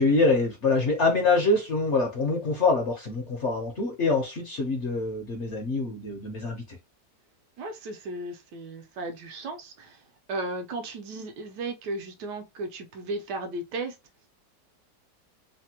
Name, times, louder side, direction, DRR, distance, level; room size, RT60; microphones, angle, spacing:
voice 1, 0.0-6.8, left 3 dB, 55° left, 0.8 m, -25 dB
voice 2, 7.6-10.0 10.3-14.0, right 2 dB, 75° right, 1.2 m, -35 dB
3.3 x 2.1 x 2.8 m
omnidirectional pair, 1.9 m